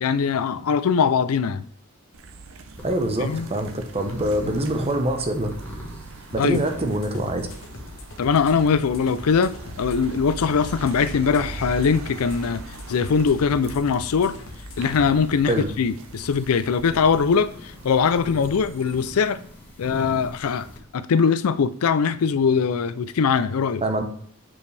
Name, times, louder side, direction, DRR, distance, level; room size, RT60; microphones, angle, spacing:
voice 1, 0.0-1.7 3.2-3.5 4.4-4.5 6.4-6.6 8.2-12.6 12.9-14.4 14.8-19.4 19.8-20.7 20.9-23.8, left 6 dB, 80° left, 0.4 m, -21 dB
sound 1, 2.1-19.2, right 4 dB, 65° right, 0.7 m, -41 dB
sound 2, 2.7-20.8, equal, 10° left, 1.5 m, -43 dB
voice 2, 2.8-5.5 6.3-7.5 15.5-15.7 23.8-24.0, right 1 dB, 30° right, 0.9 m, -24 dB
sound 3, 6.3-15.1, left 2 dB, 65° left, 1.1 m, -42 dB
7.1 x 5.3 x 3.3 m
head